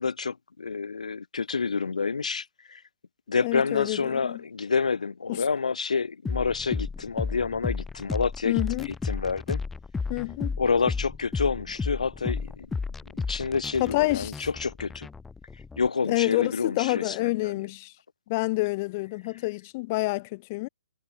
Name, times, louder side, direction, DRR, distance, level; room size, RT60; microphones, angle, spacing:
voice 1, 0.0-2.8 3.3-8.6 8.9-9.6 10.6-12.7 13.1-15.1 15.8-17.5, left 5 dB, 90° left, 6.9 m, -28 dB
voice 2, 3.4-4.4 5.3-5.4 8.4-8.9 10.1-10.6 13.8-14.5 16.0-17.9 18.3-20.7, left 23 dB, 20° left, 1.2 m, -28 dB
sound 1, 6.2-15.9, left 4 dB, 5° left, 3.6 m, -33 dB
hypercardioid pair, 175°, 4 cm